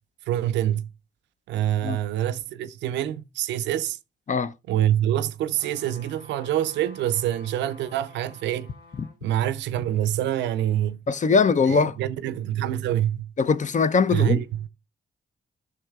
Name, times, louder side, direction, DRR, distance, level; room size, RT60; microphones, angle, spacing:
voice 1, 0.3-0.9 1.5-4.0 4.7-8.7 9.2-11.0 11.7-13.3 14.1-14.7, right 12 dB, 80° right, 0.5 m, -26 dB
sound 1, 5.5-9.2 9.7-9.8, left 4 dB, 65° left, 3.7 m, -51 dB
voice 2, 11.1-12.0 13.4-14.4, left 5 dB, 45° left, 0.6 m, -21 dB
13.0 x 6.1 x 2.4 m
hypercardioid pair, 45°, 18 cm